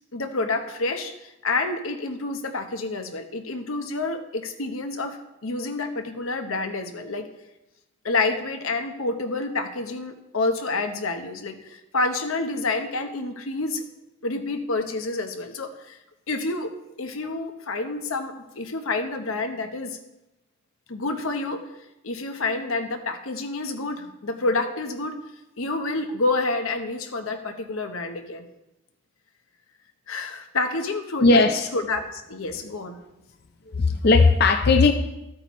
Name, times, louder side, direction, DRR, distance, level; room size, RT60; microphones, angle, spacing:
voice 1, 0.1-7.3 8.0-13.8 14.2-16.0 16.3-16.7 17.0-20.0 20.9-21.6 22.0-25.2 25.6-28.5 30.1-31.4 31.7-33.0, left 3 dB, 90° left, 6 dB, 1.0 m, -28 dB
voice 2, 31.2-31.7 33.7-34.9, left 3 dB, 50° left, 6 dB, 0.5 m, -17 dB
13.5 x 8.6 x 3.1 m, 0.93 s
head